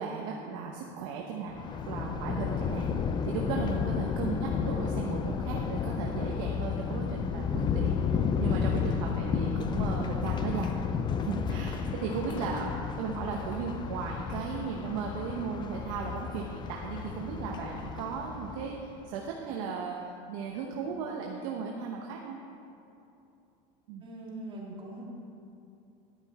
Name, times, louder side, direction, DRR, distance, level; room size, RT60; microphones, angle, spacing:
voice 1, 0.0-1.6 1.9-10.7 11.2-20.0 20.3-22.4 23.9-24.1, right 5 dB, 75° right, 0 dB, 1.1 m, -36 dB
Thunder, 1.5-18.9, left 6 dB, 25° left, 0.5 m, -32 dB
voice 2, 24.0-25.0, right 1 dB, 30° right, -4 dB, 2.6 m, -42 dB
11.5 x 9.5 x 4.3 m, 2.7 s
supercardioid pair, 125°, 17 cm